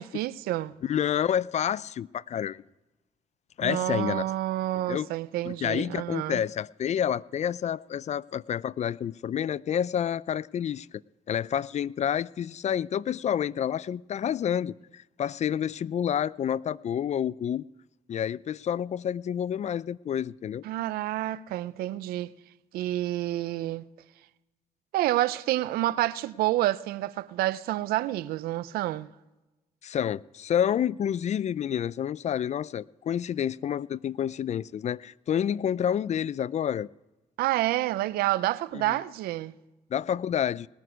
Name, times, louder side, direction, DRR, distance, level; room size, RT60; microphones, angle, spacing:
voice 1, 0.0-0.7 3.6-6.4 20.6-22.3 22.7-23.8 24.9-29.1 37.4-39.5, right 15 dB, 90° right, 0.4 m, -28 dB
voice 2, 0.8-2.6 3.6-4.2 4.7-5.1 5.4-10.9 11.3-17.7 18.1-20.6 29.8-36.9 38.7-39.0 39.9-40.7, left 9 dB, 50° left, 0.4 m, -29 dB
19.5 x 9.3 x 4.9 m
supercardioid pair, 65°, 15 cm